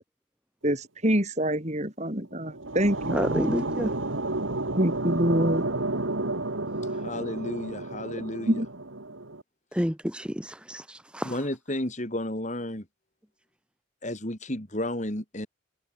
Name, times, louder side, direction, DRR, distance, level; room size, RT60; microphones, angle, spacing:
voice 1, 0.6-3.5 4.7-5.6 8.5-8.7, equal, 35° right, 7.5 m, -26 dB
sound 1, 2.2-9.4, right 2 dB, 80° right, 2.6 m, -31 dB
voice 2, 3.1-3.9 9.7-11.3, equal, 5° right, 2.1 m, -29 dB
voice 3, 6.9-8.6 11.2-12.9 14.0-15.5, left 1 dB, 35° left, 3.6 m, -32 dB
head